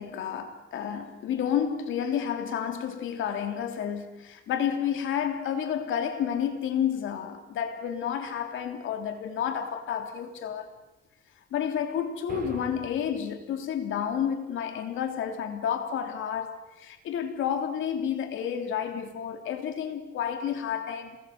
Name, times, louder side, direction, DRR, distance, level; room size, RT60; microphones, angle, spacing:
voice 1, 0.0-10.7 11.5-21.2, left 8 dB, 80° left, 3.4 m, -30 dB
sound 1, 12.3-13.3, right 5 dB, 45° right, 6.8 m, -40 dB
28.0 x 21.5 x 8.0 m
cardioid pair, 90°, 20 cm